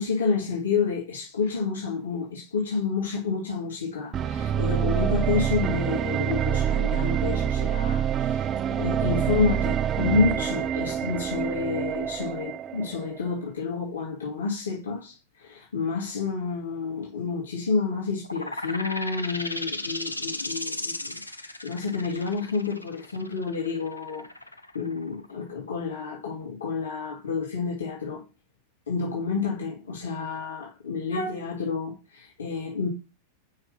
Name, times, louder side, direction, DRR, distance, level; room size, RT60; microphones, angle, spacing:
voice 1, 0.0-24.3 24.7-28.2 28.9-32.9, left 5 dB, 70° left, 2.2 m, -29 dB
sound 1, 4.1-13.2, right 9 dB, 30° right, 0.3 m, -26 dB
sound 2, 18.2-25.6, left 1 dB, 85° left, 0.6 m, -35 dB
5.8 x 5.5 x 5.5 m
figure-of-eight pair, 90°, 0 cm